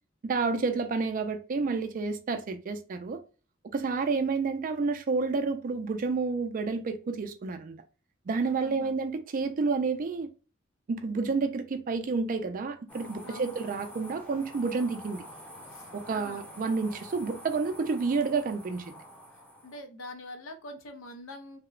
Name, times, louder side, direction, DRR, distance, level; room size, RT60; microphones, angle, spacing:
voice 1, 0.2-3.2 3.7-7.8 8.3-10.3 10.9-15.2 15.9-19.0, right 4 dB, 45° right, 0.4 m, -30 dB
voice 2, 8.4-8.9 13.2-13.6 15.7-16.4 19.6-21.6, left 1 dB, 75° left, 0.5 m, -45 dB
sound 1, 12.9-19.8, equal, 5° left, 0.5 m, -47 dB
2.8 x 2.0 x 2.4 m
head